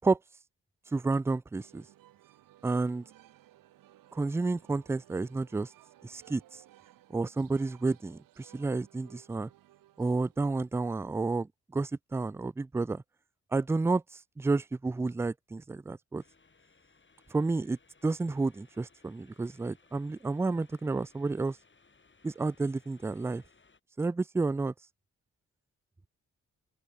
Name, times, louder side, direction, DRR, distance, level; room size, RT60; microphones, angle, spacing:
voice 1, 0.9-1.8 2.6-3.0 4.1-5.7 6.0-6.4 7.1-9.5 10.0-13.0 13.5-14.0 14.4-16.2 17.3-17.8 18.0-21.6 22.2-23.4 24.0-24.7, right 3 dB, 10° right, 0.4 m, -30 dB
sound 1, 1.5-10.7, right 14 dB, 85° right, 5.5 m, -59 dB
sound 2, 16.2-23.8, left 4 dB, 35° left, 4.0 m, -64 dB
open air
supercardioid pair, 45°, 33 cm